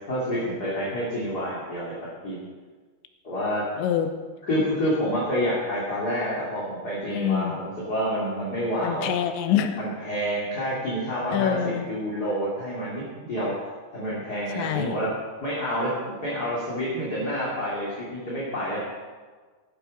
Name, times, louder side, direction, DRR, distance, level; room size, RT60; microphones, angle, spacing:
voice 1, 0.1-1.9 2.2-2.4 3.2-3.6 4.4-9.1 9.8-13.6 13.9-15.1 15.4-18.8, equal, 30° left, -7 dB, 2.3 m, -28 dB
voice 2, 3.8-4.1 7.1-7.6 8.8-9.8 11.3-11.9 14.6-15.0, left 9 dB, 85° left, 8 dB, 3.2 m, -25 dB
15.5 x 11.5 x 5.2 m, 1.5 s
omnidirectional pair, 5.2 m